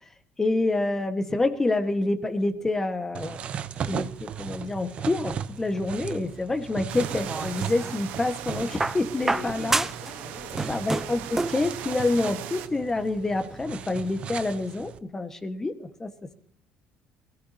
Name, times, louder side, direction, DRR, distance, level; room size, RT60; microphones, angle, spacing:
voice 1, 0.4-3.4 3.9-9.9 10.7-16.3, left 2 dB, 15° left, 8 dB, 1.5 m, -27 dB
sound 1, 3.1-15.0, right 8 dB, 45° right, 0.8 m, -37 dB
sound 2, 6.9-12.7, right 12 dB, 80° right, 1.2 m, -39 dB
sound 3, 7.0-8.0 8.8-10.1 10.4-11.7 12.8-12.9, right 2 dB, 15° right, 0.6 m, -29 dB
voice 2, 9.2-10.8, left 6 dB, 55° left, -3 dB, 3.8 m, -43 dB
23.0 x 17.0 x 2.8 m, 0.63 s
cardioid pair, 125°, 3 cm